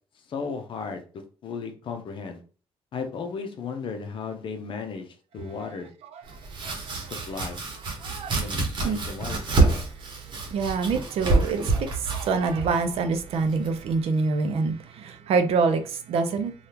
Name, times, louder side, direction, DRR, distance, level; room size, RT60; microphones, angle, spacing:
voice 1, 0.3-1.0 1.4-2.4 2.9-5.9 7.3-7.6 8.3-9.8, left 5 dB, 55° left, 0.7 m, -35 dB
voice 2, 6.1-7.1 8.0-8.4 8.8-9.1 10.1-16.5, right 4 dB, 70° right, 0.5 m, -26 dB
Domestic sounds home sounds, 6.3-14.0, right 3 dB, 50° right, 1.0 m, -27 dB
3.4 x 2.3 x 2.9 m
cardioid pair, 130°, 10 cm